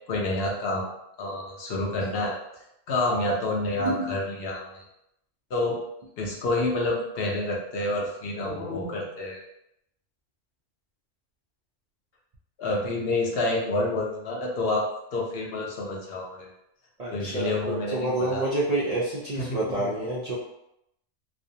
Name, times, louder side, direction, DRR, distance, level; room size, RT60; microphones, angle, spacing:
voice 1, 0.1-0.9 1.2-2.4 2.9-4.8 5.5-5.8 6.2-9.4 12.6-16.5 17.1-18.4 19.5-19.9, left 2 dB, 60° left, -1 dB, 0.7 m, -28 dB
voice 2, 3.8-4.1 17.0-20.4, right 1 dB, 65° right, -7 dB, 0.3 m, -28 dB
2.4 x 2.1 x 2.7 m, 0.80 s
omnidirectional pair, 1.3 m